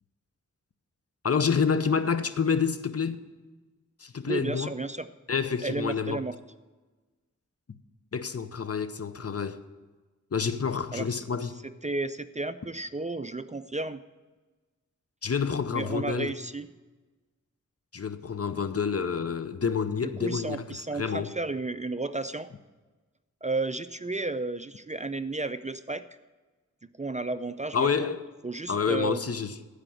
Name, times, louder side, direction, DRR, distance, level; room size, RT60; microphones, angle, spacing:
voice 1, 1.2-3.2 4.0-4.7 5.3-6.2 8.1-9.6 10.3-11.6 15.2-16.3 17.9-21.3 27.7-28.2 28.7-29.5, left 6 dB, 50° left, 0.7 m, -28 dB
voice 2, 4.2-5.1 5.6-6.3 10.9-11.2 11.6-14.0 15.7-16.7 20.2-22.5 23.4-26.0 27.0-28.1 28.4-29.2, right 3 dB, 25° right, 0.4 m, -33 dB
15.0 x 5.0 x 7.7 m
wide cardioid pair, 55°, 32 cm